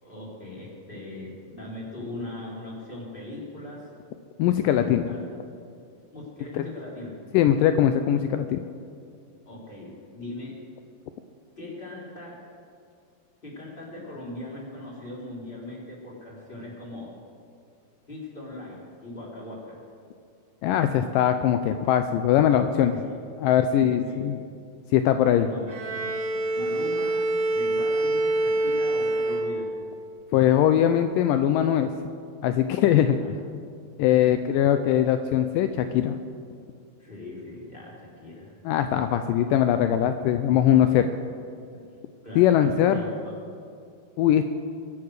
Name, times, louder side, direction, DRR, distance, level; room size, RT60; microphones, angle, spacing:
voice 1, 0.0-3.9 4.7-5.4 6.1-7.2 9.5-10.6 11.6-12.4 13.4-17.1 18.1-19.8 22.9-23.2 23.9-24.3 25.3-25.8 26.5-27.2 27.5-29.7 33.0-33.3 34.1-34.3 37.0-38.5 41.7-41.9 42.2-43.1, left 2 dB, 15° left, -4 dB, 3.8 m, -40 dB
voice 2, 4.4-5.1 6.5-6.7 7.3-8.6 20.6-23.0 23.4-24.4 24.9-25.5 30.3-31.9 32.4-33.2 34.0-36.1 38.7-41.1 42.4-43.0 44.2-44.5, left 10 dB, 85° left, 8 dB, 2.0 m, -21 dB
Bowed string instrument, 25.7-30.1, right 2 dB, 50° right, 3.7 m, -26 dB
23.0 x 9.6 x 6.4 m, 2.4 s
omnidirectional pair, 4.4 m